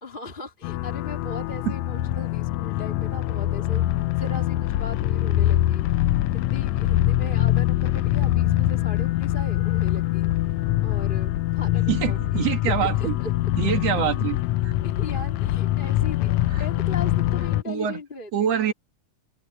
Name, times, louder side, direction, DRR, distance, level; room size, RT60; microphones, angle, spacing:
voice 1, 0.0-3.8 4.2-5.8 6.3-10.3 10.8-13.3 13.6-14.1 14.8-18.7, left 2 dB, 15° left, 2.7 m, -39 dB
sound 1, 0.6-17.6, left 14 dB, 80° left, 1.8 m, -24 dB
voice 2, 11.9-13.1 13.6-14.4 14.6-14.7 16.5-16.6 17.7-18.0 18.3-18.7, right 9 dB, 60° right, 2.5 m, -25 dB
omnidirectional pair, 3.4 m